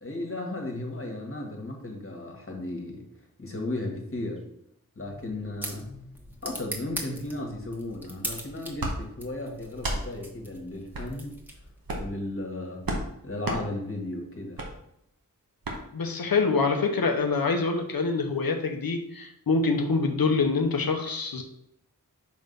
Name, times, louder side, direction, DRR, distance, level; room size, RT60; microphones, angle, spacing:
voice 1, 0.0-3.1 3.4-4.4 4.9-5.9 6.4-11.4 11.9-12.9 13.2-14.6, left 2 dB, 40° left, 0 dB, 1.6 m, -35 dB
sound 1, 5.0-11.9, equal, 5° right, 1.4 m, -41 dB
sound 2, 8.8-9.0 9.7-10.0 10.9-11.1 11.8-12.1 12.8-13.0 13.4-13.6 14.5-14.7 15.6-15.8, right 1 dB, 80° right, 1.2 m, -31 dB
voice 2, 15.9-21.4, left 4 dB, 85° left, 4 dB, 0.9 m, -25 dB
5.2 x 3.6 x 5.3 m, 0.79 s
wide cardioid pair, 45°, 35 cm